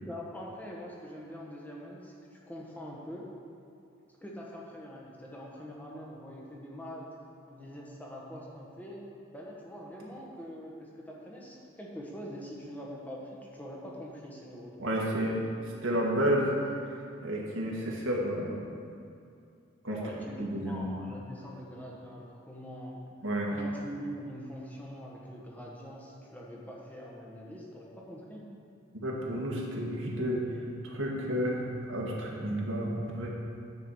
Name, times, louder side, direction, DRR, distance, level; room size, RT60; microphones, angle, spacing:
voice 1, 0.1-3.3 4.2-7.1 7.5-14.8 19.9-23.0 23.5-28.6, equal, 10° left, -3 dB, 1.2 m, -43 dB
voice 2, 14.8-15.5 15.8-16.5 17.2-18.5 19.8-20.0 20.4-20.9 23.2-23.5 28.9-30.4 30.8-33.3, equal, 85° right, -2 dB, 1.7 m, -31 dB
9.7 x 4.8 x 7.0 m, 2.5 s
head